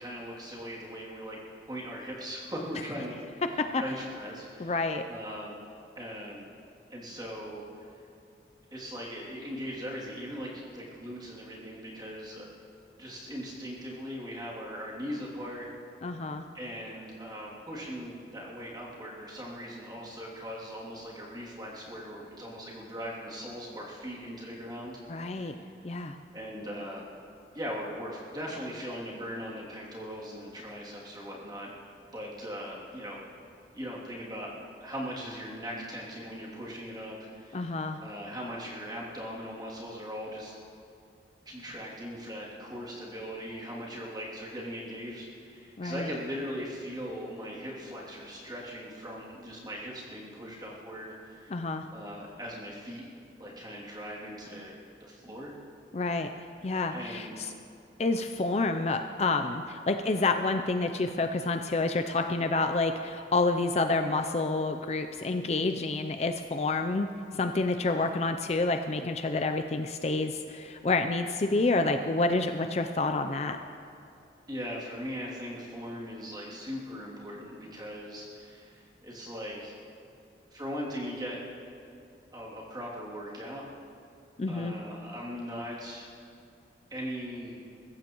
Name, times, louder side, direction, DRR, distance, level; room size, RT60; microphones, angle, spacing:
voice 1, 0.0-1.4 1.7-3.2 3.8-5.6 5.9-6.4 6.9-7.9 8.7-12.6 13.0-15.7 16.5-25.0 25.3-25.5 26.3-27.0 27.5-31.7 32.1-33.3 33.7-34.5 34.8-40.5 41.5-53.1 53.4-55.5 56.9-57.3 74.5-79.8 80.5-81.4 82.3-83.7 84.5-86.1 86.9-87.6, equal, 20° right, -5 dB, 2.6 m, -39 dB
voice 2, 4.6-5.0 16.0-16.4 25.1-25.5 25.8-26.2 37.5-38.0 45.8-46.1 51.5-51.9 55.9-56.3 56.6-57.5 58.0-67.1 67.3-73.6 84.4-84.7, left 3 dB, 35° left, 6 dB, 0.4 m, -28 dB
22.5 x 14.5 x 3.0 m, 2.6 s
head